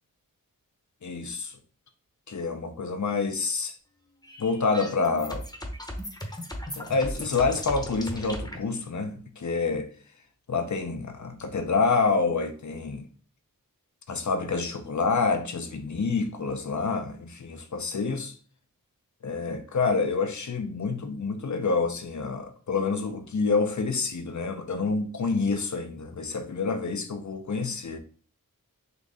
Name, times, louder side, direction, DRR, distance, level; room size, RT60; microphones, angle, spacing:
voice 1, 1.0-1.6 2.3-3.8 4.4-5.4 6.8-9.9 10.5-13.1 14.1-18.3 19.2-28.0, left 4 dB, 55° left, 0.7 m, -27 dB
sound 1, 4.2-8.6, equal, 10° left, 1.0 m, -36 dB
4.0 x 3.0 x 3.7 m
wide cardioid pair, 55°, 34 cm